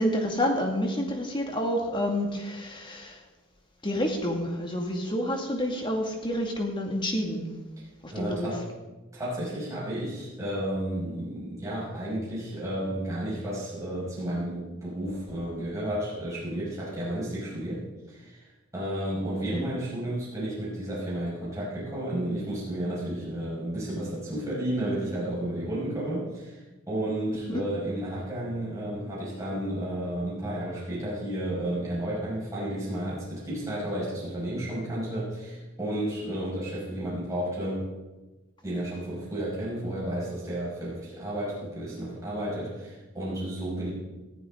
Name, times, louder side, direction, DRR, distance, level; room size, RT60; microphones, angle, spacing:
voice 1, 0.0-3.2 3.8-7.5 8.0-8.5 27.5-27.6, equal, 20° left, 2 dB, 2.2 m, -28 dB
voice 2, 8.1-8.7 9.1-37.8 38.6-43.9, right 1 dB, 15° right, -8 dB, 6.0 m, -32 dB
19.5 x 14.5 x 3.9 m, 1.2 s
head